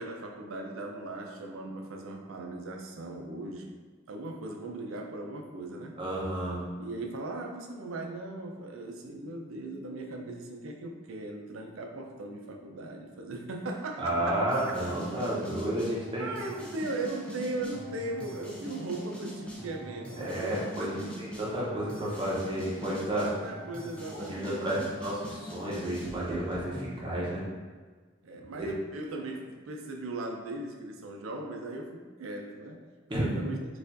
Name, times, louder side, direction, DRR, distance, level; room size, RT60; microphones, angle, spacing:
voice 1, 0.0-3.8 4.1-6.0 6.8-14.4 16.2-20.6 21.0-21.3 23.2-25.0 28.2-32.8 33.2-33.6, right 2 dB, 85° right, 2 dB, 0.4 m, -38 dB
voice 2, 6.0-6.6 14.0-16.3 20.1-23.3 24.1-27.4 28.6-28.7 33.1-33.4, right 1 dB, 25° right, -6 dB, 0.7 m, -31 dB
sound 1, 14.1-27.0, equal, 5° left, 0.5 m, -43 dB
4.3 x 2.4 x 2.6 m, 1.4 s
head